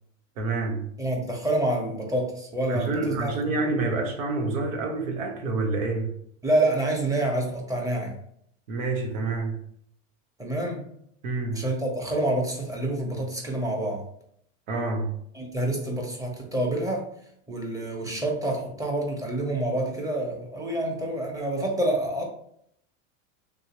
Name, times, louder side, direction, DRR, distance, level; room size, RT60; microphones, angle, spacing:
voice 1, 0.4-0.9 2.7-6.1 8.7-9.6 11.2-11.6 14.7-15.1, right 3 dB, 90° right, 3 dB, 1.0 m, -28 dB
voice 2, 1.0-3.3 6.4-8.2 10.4-10.8 11.5-14.0 15.3-17.1 17.5-22.2, right 1 dB, 10° right, 0 dB, 0.8 m, -27 dB
3.4 x 2.7 x 2.9 m, 0.70 s
supercardioid pair, 110°, 39 cm